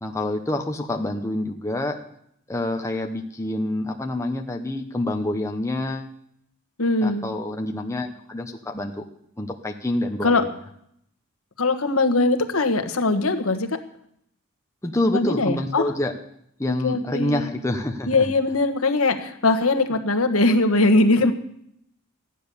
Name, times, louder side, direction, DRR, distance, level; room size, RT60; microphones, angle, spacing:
voice 1, 0.0-2.0 2.5-6.1 7.0-9.0 9.4-10.5 14.8-16.1 16.6-18.3, left 1 dB, 15° left, 3 dB, 0.9 m, -27 dB
voice 2, 6.8-7.3 10.2-10.4 11.6-13.8 15.1-15.9 16.8-17.5 18.0-21.3, left 2 dB, 80° left, 7 dB, 1.4 m, -21 dB
14.5 x 10.0 x 7.0 m, 0.72 s
head